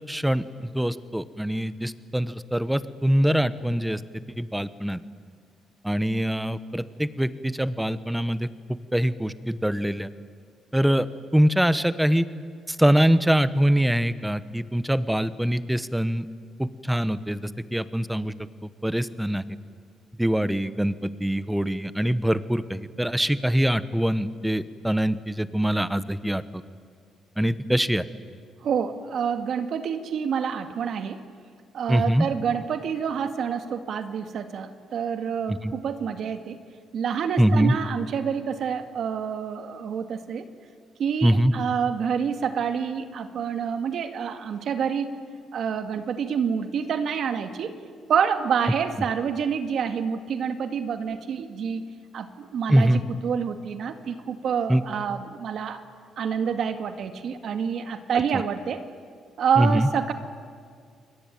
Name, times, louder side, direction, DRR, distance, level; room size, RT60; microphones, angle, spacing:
voice 1, 0.1-4.0 4.4-5.0 5.8-8.5 8.9-10.1 10.7-11.1 11.3-12.2 12.7-16.3 16.6-18.3 18.8-19.4 20.2-26.4 27.4-28.0 31.9-32.3 35.5-35.7 37.4-37.7 41.2-41.5 52.7-53.0 54.7-54.8 59.6-59.9, equal, 5° right, 14 dB, 1.2 m, -23 dB
voice 2, 28.6-31.2 31.7-36.6 36.9-40.5 41.0-45.1 45.5-47.7 48.1-51.8 52.1-55.8 56.2-58.8 59.4-60.1, right 7 dB, 65° right, 8 dB, 2.2 m, -27 dB
28.5 x 22.0 x 9.3 m, 2.1 s
cardioid pair, 90°, 0 cm